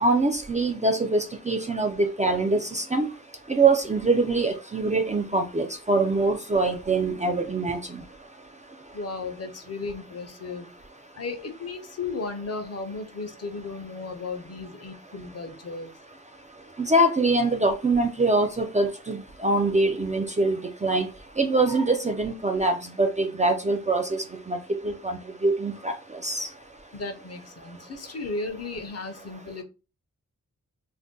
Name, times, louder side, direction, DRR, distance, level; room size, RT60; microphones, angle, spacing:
voice 1, 0.0-3.1 3.5-7.8 16.9-19.2 19.4-21.1 21.4-24.6 24.8-25.9 26.2-26.5, right 2 dB, 25° right, 0.3 m, -24 dB
voice 2, 8.9-10.7 11.1-16.0 26.9-29.6, left 3 dB, 50° left, 0.6 m, -35 dB
2.5 x 2.1 x 3.6 m
wide cardioid pair, 95°, 32 cm